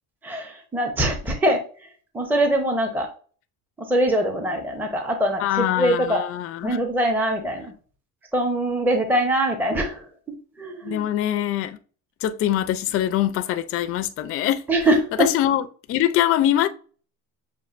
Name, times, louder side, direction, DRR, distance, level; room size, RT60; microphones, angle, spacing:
voice 1, 0.2-1.6 2.1-3.1 3.9-6.2 6.6-7.7 8.3-10.1 10.6-11.1 14.7-15.3, right 1 dB, 5° right, 0.6 m, -23 dB
voice 2, 5.4-6.8 10.8-11.8 12.2-14.6 15.2-16.7, left 12 dB, 40° left, 0.4 m, -23 dB
7.0 x 2.5 x 2.4 m
cardioid pair, 130°, 38 cm